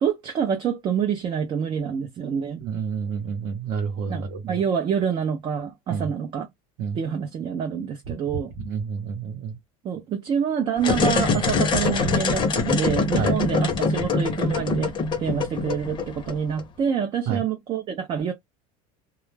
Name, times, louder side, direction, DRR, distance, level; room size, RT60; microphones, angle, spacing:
voice 1, 0.0-2.6 4.1-6.5 7.0-8.5 9.8-14.9 15.2-18.3, right 7 dB, 30° right, 0.5 m, -27 dB
voice 2, 2.6-4.6 5.9-6.1 6.8-7.0 8.6-9.6 13.2-13.4 17.3-17.4, right 6 dB, 50° right, 0.8 m, -29 dB
sound 1, 10.8-16.6, left 4 dB, 25° left, 0.7 m, -24 dB
2.3 x 2.0 x 3.1 m
supercardioid pair, 150°, 18 cm